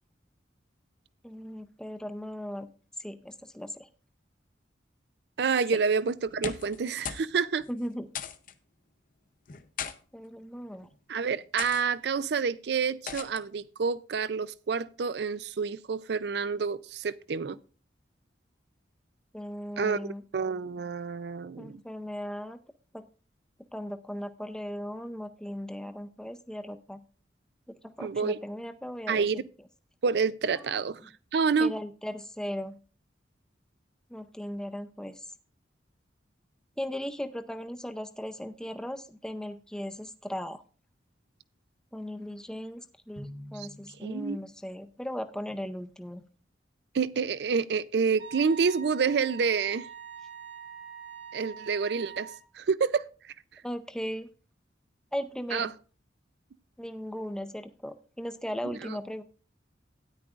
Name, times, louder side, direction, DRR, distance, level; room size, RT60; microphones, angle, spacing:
voice 1, 1.2-2.7 3.0-3.9 7.7-8.1 10.1-10.9 19.3-20.2 21.6-22.6 22.9-23.1 23.7-27.0 27.8-29.4 30.6-31.1 31.6-32.8 34.1-35.3 36.8-40.6 41.9-46.2 53.6-54.3 55.1-55.7 56.8-59.2, equal, 5° left, 0.5 m, -37 dB
voice 2, 5.4-7.6 11.1-17.6 19.8-20.1 20.3-21.8 28.0-28.4 29.1-29.4 30.0-31.0 31.3-31.7 43.6-43.7 44.0-44.4 46.9-49.9 51.3-52.3 52.6-53.1 55.5-55.7, right 5 dB, 60° right, 0.4 m, -28 dB
sound 1, 6.3-6.8 7.0-7.3 7.6-7.7 8.2-8.5 9.5-10.0 10.7-11.0 11.6-11.8 13.1-13.4, left 7 dB, 45° left, 0.7 m, -37 dB
Drum, 43.2-44.9, left 1 dB, 20° left, 1.0 m, -47 dB
Wind instrument woodwind instrument, 48.2-52.5, right 6 dB, 85° right, 2.6 m, -44 dB
13.0 x 9.9 x 2.5 m
head